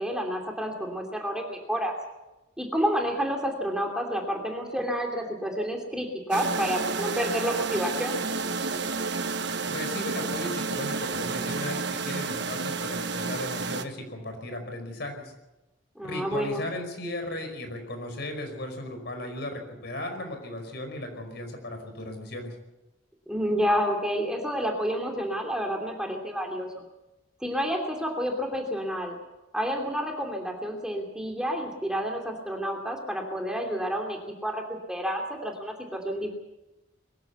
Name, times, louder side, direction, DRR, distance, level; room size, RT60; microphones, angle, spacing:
voice 1, 0.0-1.9 2.6-8.2 15.9-16.6 23.3-26.8 27.4-29.2 29.5-34.6 34.9-36.3, equal, 5° right, 1 dB, 2.9 m, -29 dB
sound 1, 6.3-13.8, right 4 dB, 65° right, 1.3 m, -30 dB
voice 2, 9.7-15.3 16.0-22.5, left 1 dB, 60° left, 5 dB, 5.1 m, -36 dB
22.5 x 14.5 x 8.2 m, 1.0 s
head